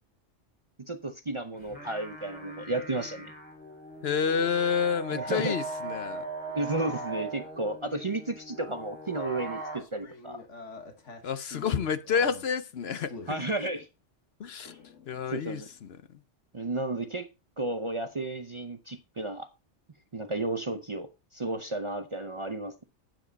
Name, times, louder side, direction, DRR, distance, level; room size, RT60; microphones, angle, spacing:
voice 1, 0.8-3.3 5.1-5.5 6.5-10.4 13.3-13.9 14.7-14.8 15.3-15.7 16.5-17.3 17.6-19.5 20.1-22.9, right 2 dB, 35° right, 0.6 m, -33 dB
sound 1, 1.5-9.8, right 2 dB, 5° left, 4.3 m, -40 dB
voice 2, 4.0-6.2 11.2-13.4 14.4-14.7 15.1-16.0, left 6 dB, 65° left, 0.9 m, -29 dB
sound 2, 9.8-12.5 13.0-13.4 14.6-15.8, left 3 dB, 80° left, 1.7 m, -46 dB
9.1 x 7.5 x 4.0 m
omnidirectional pair, 1.2 m